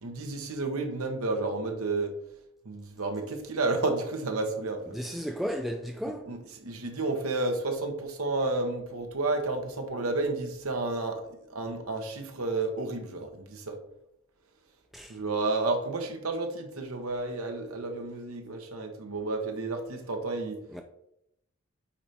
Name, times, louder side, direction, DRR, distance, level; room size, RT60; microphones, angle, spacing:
voice 1, 0.0-2.1 2.6-5.0 6.0-13.8 15.1-20.6, right 3 dB, 90° right, 1.1 m, -31 dB
voice 2, 4.9-6.3 14.9-15.2 20.7-20.8, equal, ahead, 0.3 m, -34 dB
8.5 x 3.3 x 4.2 m
head